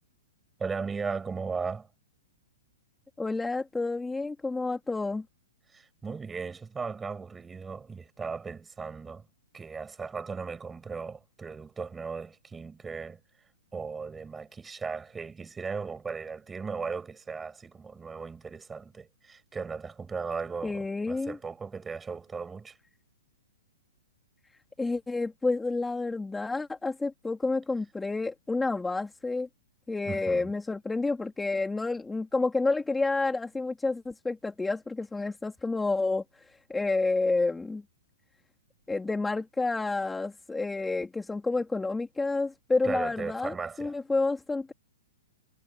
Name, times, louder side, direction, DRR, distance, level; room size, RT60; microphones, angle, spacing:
voice 1, 0.6-1.9 5.7-9.3 9.5-13.2 13.7-22.8 30.1-30.5 42.8-43.9, right 5 dB, 10° right, 6.1 m, -37 dB
voice 2, 3.2-5.3 20.6-21.4 24.8-29.5 29.9-37.8 38.9-44.7, left 3 dB, 5° left, 2.0 m, -29 dB
hypercardioid pair, 135°, 0 cm